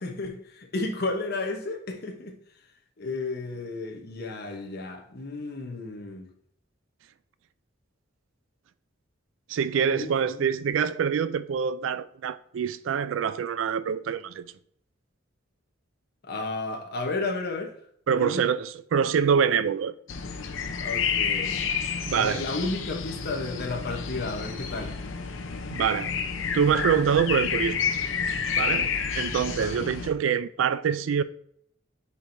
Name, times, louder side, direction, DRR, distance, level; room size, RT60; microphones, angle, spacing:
voice 1, 0.0-2.4 3.0-6.3 9.9-10.4 16.2-17.7 18.2-18.4 20.8-21.7 22.1-25.0 29.6-29.9, left 3 dB, 55° left, 0.9 m, -33 dB
voice 2, 9.5-14.5 18.1-19.9 22.0-22.4 25.7-26.1 26.5-27.8 28.5-28.9 29.1-31.2, right 7 dB, 85° right, 0.4 m, -25 dB
sound 1, 20.1-30.1, left 6 dB, 85° left, 0.7 m, -30 dB
8.3 x 4.6 x 2.6 m
head